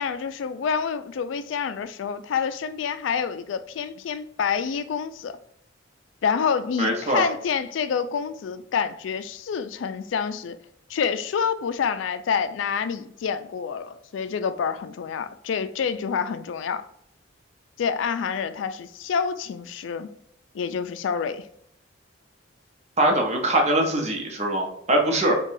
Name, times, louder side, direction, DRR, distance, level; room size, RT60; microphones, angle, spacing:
voice 1, 0.0-5.3 6.2-10.6 10.9-16.8 17.8-20.1 20.5-21.4, left 6 dB, 80° left, 11 dB, 0.3 m, -27 dB
voice 2, 6.8-7.3 23.0-25.4, right 1 dB, 35° right, 2 dB, 0.8 m, -22 dB
4.7 x 2.3 x 2.6 m, 0.70 s
head